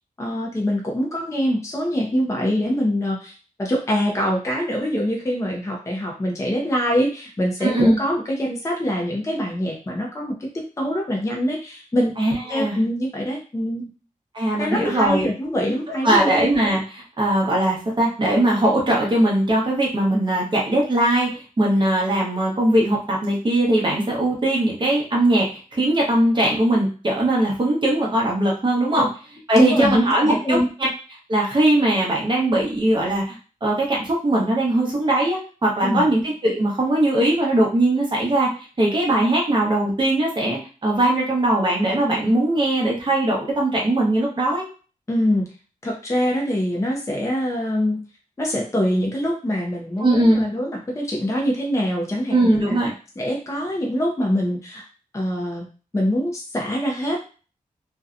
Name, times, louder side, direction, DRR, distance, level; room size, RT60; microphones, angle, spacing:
voice 1, 0.2-3.3 3.6-12.1 12.5-13.9 14.6-16.4 29.0-29.1 29.5-30.0 30.3-30.7 35.8-36.1 45.1-45.4 45.8-48.0 48.4-52.8 53.2-54.8 55.1-57.2, equal, 20° left, -1 dB, 0.5 m, -24 dB
voice 2, 7.6-8.0 12.2-12.8 14.3-15.3 16.0-29.1 29.5-30.9 31.3-38.5 38.8-44.6 50.0-50.4 52.3-52.9, right 1 dB, 35° right, -3 dB, 0.9 m, -20 dB
2.6 x 2.2 x 2.5 m, 0.36 s
wide cardioid pair, 115°, 14 cm